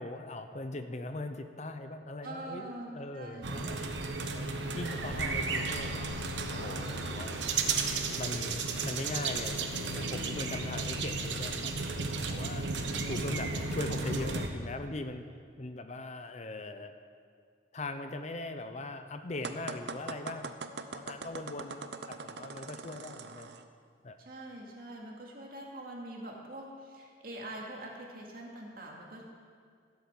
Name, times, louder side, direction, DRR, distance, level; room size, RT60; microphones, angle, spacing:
voice 1, 0.0-3.8 4.2-6.0 6.5-7.4 8.2-12.6 12.9-15.2 15.6-16.9 17.7-23.5 24.0-24.2, left 2 dB, 40° left, 8 dB, 0.7 m, -40 dB
voice 2, 2.2-3.5 6.5-6.8 24.2-29.2, right 1 dB, 55° right, -1 dB, 2.3 m, -44 dB
sound 1, 3.4-14.5, right 3 dB, 90° right, 1.1 m, -34 dB
sound 2, 19.4-23.6, right 4 dB, 70° right, 0.7 m, -42 dB
15.5 x 7.9 x 7.2 m, 2.1 s
head